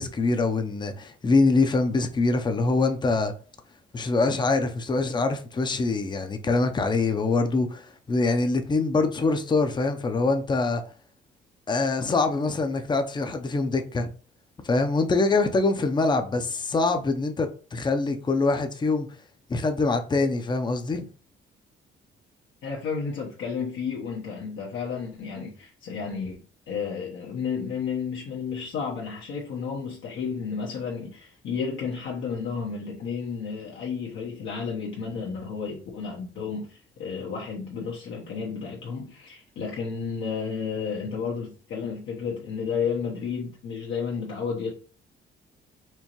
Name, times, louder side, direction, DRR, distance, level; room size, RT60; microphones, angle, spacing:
voice 1, 0.0-3.3 3.9-10.8 11.7-14.1 14.6-19.1 19.5-21.1, left 3 dB, 20° left, 0.6 m, -24 dB
voice 2, 22.6-44.7, left 6 dB, 75° left, 0.9 m, -32 dB
4.5 x 2.5 x 2.9 m
cardioid pair, 90°, 20 cm